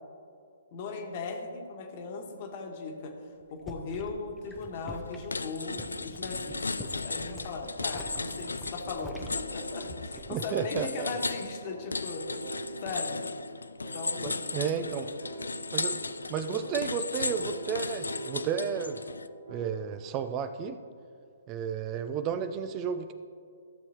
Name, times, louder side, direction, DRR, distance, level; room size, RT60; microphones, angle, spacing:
voice 1, 0.7-3.1 3.5-12.2 12.8-13.2 13.9-14.4, left 4 dB, 40° left, 3 dB, 1.4 m, -38 dB
sound 1, 3.4-10.5 10.8-11.2, left 2 dB, 5° left, 0.7 m, -46 dB
sound 2, 4.7-4.9 5.3-19.3, left 3 dB, 80° left, 0.3 m, -36 dB
sound 3, 8.1-20.1, right 1 dB, 70° right, 1.1 m, -45 dB
voice 2, 10.3-11.1 14.2-15.1 15.7-16.0 16.3-19.0 19.5-20.8 21.5-23.1, right 7 dB, 30° right, 10 dB, 0.4 m, -32 dB
14.5 x 7.0 x 2.9 m, 2.4 s
figure-of-eight pair, 125°, 0 cm